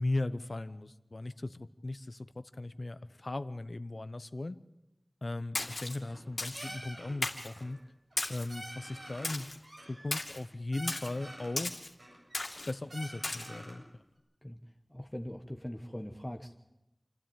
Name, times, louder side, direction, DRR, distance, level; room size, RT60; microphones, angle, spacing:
voice 1, 0.0-4.6 5.2-7.8 8.3-9.5 9.9-11.8 12.7-13.8, left 2 dB, 70° left, 12 dB, 0.9 m, -37 dB
Splash splatter, 5.5-6.0 6.4-6.7 7.2-7.5 8.2-8.5 9.2-9.6 10.1-10.4 10.9-11.1 11.6-11.9 12.3-12.7 13.2-13.5, left 2 dB, 90° left, 2.4 m, -36 dB
sound 1, 5.9-6.3 6.5-7.1 7.4-7.8 8.1-8.2 8.5-9.3 9.6-10.4 10.7-11.6 12.0-12.6 12.9-13.8, equal, 85° right, 7.9 m, -47 dB
voice 2, 14.9-16.6, equal, 15° left, 2 dB, 1.3 m, -41 dB
28.5 x 12.5 x 9.0 m, 0.92 s
wide cardioid pair, 50°, 0 cm